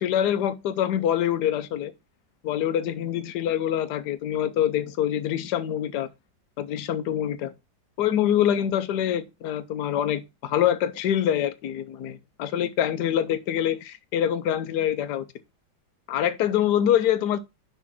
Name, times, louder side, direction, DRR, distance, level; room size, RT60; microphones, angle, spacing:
voice 1, 0.0-1.9 2.4-6.1 6.6-7.5 8.0-15.2 16.1-17.4, left 10 dB, 65° left, 1.3 m, -25 dB
6.3 x 3.8 x 5.8 m
omnidirectional pair, 2.0 m